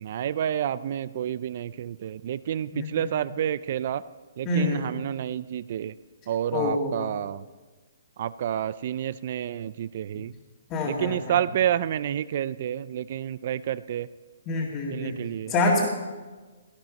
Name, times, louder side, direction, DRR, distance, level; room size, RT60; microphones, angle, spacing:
voice 1, 0.0-4.0 4.4-5.9 6.3-7.4 8.2-10.3 10.8-14.1 14.9-15.5, right 10 dB, 40° right, 17 dB, 0.4 m, -29 dB
voice 2, 2.7-3.1 4.4-4.8 6.5-7.1 10.7-11.3 14.5-15.2 15.5-15.9, left 2 dB, 20° left, -5 dB, 2.3 m, -26 dB
18.0 x 13.0 x 5.3 m, 1.3 s
hypercardioid pair, 170°, 0 cm